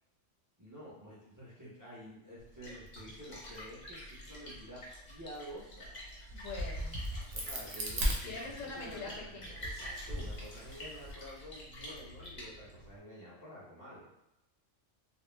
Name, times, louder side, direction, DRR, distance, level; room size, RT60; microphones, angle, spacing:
voice 1, 0.6-6.0 7.3-8.3 8.8-14.1, equal, 20° right, -8 dB, 0.5 m, -50 dB
Splash splatter, 2.4-13.0, equal, 45° left, 0.7 m, -48 dB
voice 2, 6.1-7.0 8.3-9.6, left 3 dB, 85° left, -1 dB, 1.0 m, -44 dB
Crack, 6.3-8.9 9.5-11.1, equal, 80° right, 0.3 m, -37 dB
2.3 x 2.0 x 3.2 m, 0.89 s
omnidirectional pair, 1.3 m